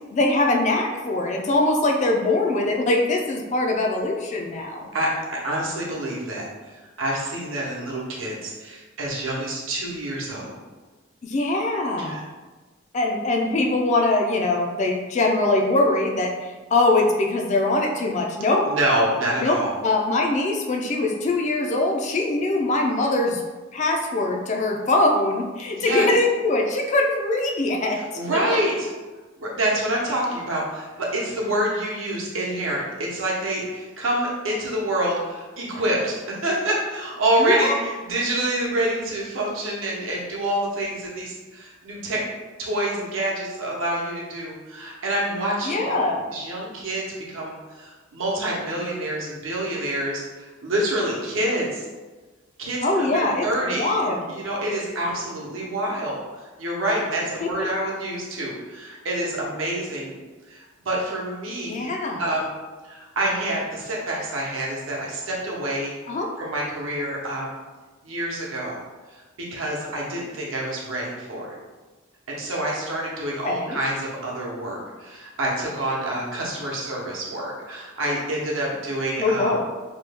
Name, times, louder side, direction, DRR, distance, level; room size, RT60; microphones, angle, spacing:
voice 1, 0.1-4.9 11.2-12.2 12.9-18.7 19.4-19.6 19.8-23.4 23.7-28.0 37.4-37.8 45.7-46.2 52.8-54.3 61.7-62.3 66.1-66.3 73.4-73.8 79.2-79.7, left 2 dB, 35° left, 1 dB, 0.3 m, -22 dB
voice 2, 4.9-6.5 7.0-10.5 12.0-12.2 18.6-19.7 25.7-26.1 27.9-28.9 29.4-42.2 42.6-45.9 46.3-51.8 52.6-53.9 54.3-60.2 60.5-61.9 62.2-62.6 62.8-65.9 66.4-67.6 68.0-68.8 69.1-71.5 72.3-79.6, right 1 dB, 80° right, -4 dB, 0.8 m, -27 dB
3.0 x 2.2 x 3.3 m, 1.3 s
head